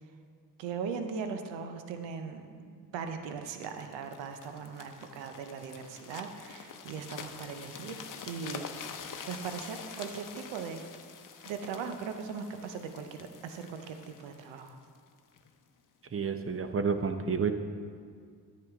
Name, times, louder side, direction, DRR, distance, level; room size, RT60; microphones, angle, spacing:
voice 1, 0.6-8.7 9.3-10.9 11.5-14.8, right 6 dB, 90° right, 7 dB, 0.8 m, -39 dB
sound 1, 3.6-15.5 16.1-16.3, left 6 dB, 45° left, 0.8 m, -46 dB
voice 2, 16.1-17.5, right 5 dB, 30° right, 8 dB, 0.7 m, -30 dB
9.6 x 7.8 x 3.5 m, 2.1 s
supercardioid pair, 60°, 43 cm